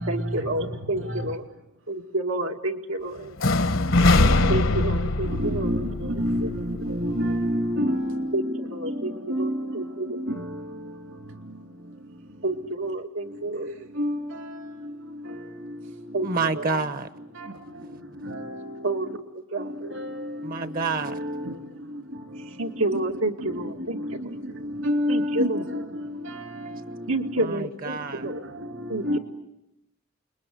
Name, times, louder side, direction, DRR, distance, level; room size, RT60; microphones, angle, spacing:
voice 1, 0.1-1.4 1.9-3.4 4.5-5.8 6.4-6.6 8.3-8.4 8.7-10.3 12.4-13.9 16.1-16.3 16.5-16.8 18.8-19.2 19.5-19.7 22.6-24.0 25.1-25.6 27.1-28.4 28.9-29.2, right 2 dB, 90° right, 4 dB, 2.2 m, -29 dB
sound 1, 3.4-7.3, left 2 dB, 65° left, 1.1 m, -22 dB
voice 2, 5.4-8.3 9.3-9.6 14.0-14.2 18.3-18.4 21.1-21.4 24.8-25.8 29.0-29.2, equal, 65° right, 5 dB, 2.8 m, -26 dB
voice 3, 16.2-17.1 20.4-21.2 27.4-28.3, right 4 dB, 40° right, 13 dB, 1.0 m, -28 dB
29.5 x 21.5 x 9.4 m, 0.88 s
head